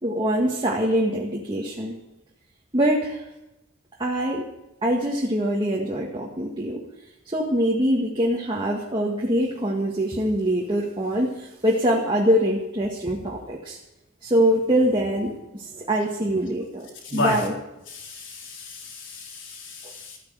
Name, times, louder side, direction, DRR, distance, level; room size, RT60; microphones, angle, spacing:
voice 1, 0.0-2.0 2.7-3.2 4.0-4.4 4.8-6.8 7.3-13.8 14.2-17.5, equal, 25° right, -2 dB, 1.9 m, -24 dB
voice 2, 17.0-17.4 17.9-20.2, left 2 dB, 60° left, 0 dB, 4.1 m, -32 dB
14.5 x 9.6 x 7.9 m, 0.92 s
head